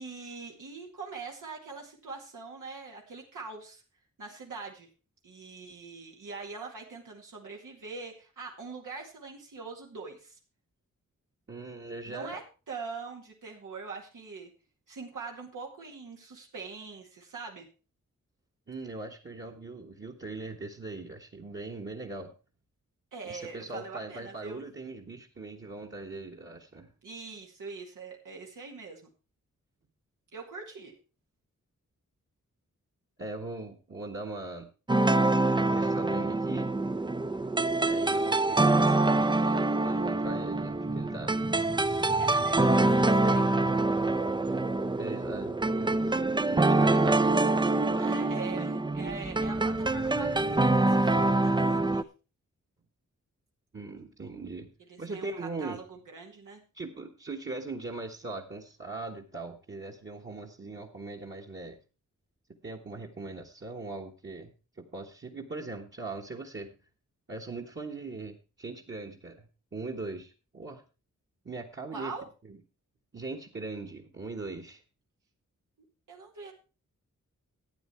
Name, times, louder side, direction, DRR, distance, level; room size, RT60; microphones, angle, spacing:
voice 1, 0.0-3.8 4.2-4.9 5.2-10.4 12.1-14.5 14.9-17.7 23.1-24.6 27.0-29.1 30.3-30.9 42.2-43.5 48.0-52.1 54.9-56.6 71.9-72.2 76.1-76.5, right 4 dB, 90° right, -1 dB, 2.2 m, -43 dB
voice 2, 11.5-12.4 18.7-22.3 23.2-26.9 33.2-34.7 35.6-36.7 37.8-41.3 45.0-46.1 46.5-47.5 47.8-48.1 53.7-54.7 55.0-55.8 56.7-61.8 62.6-66.8 67.3-70.8 71.4-72.1 72.5-72.6 73.1-74.8, right 3 dB, 35° right, 5 dB, 1.4 m, -40 dB
sound 1, 34.9-52.0, right 2 dB, 15° right, 0.5 m, -25 dB
12.5 x 8.8 x 4.5 m, 0.33 s
wide cardioid pair, 85°, 31 cm